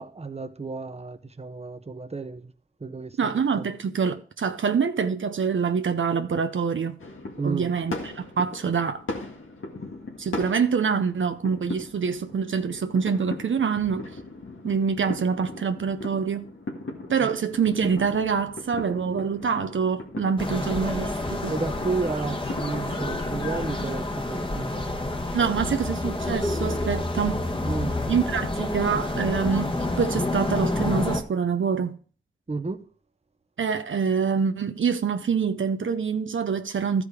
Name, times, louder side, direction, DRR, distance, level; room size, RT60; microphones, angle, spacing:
voice 1, 0.0-2.5 2.8-3.2 3.6-3.7 7.4-7.7 17.2-17.3 21.4-25.1 25.4-25.8 27.7-27.9 32.5-32.8, right 3 dB, 30° right, 0.8 m, -32 dB
voice 2, 3.2-7.0 7.4-9.0 10.2-14.2 14.6-16.5 17.1-21.5 25.3-27.4 28.1-32.0 33.6-37.0, right 6 dB, 75° right, 0.6 m, -25 dB
sound 1, 7.0-23.9, left 2 dB, 85° left, 1.8 m, -39 dB
sound 2, 20.4-31.2, left 2 dB, 25° left, 1.3 m, -28 dB
13.0 x 5.0 x 4.8 m
wide cardioid pair, 55°, 20 cm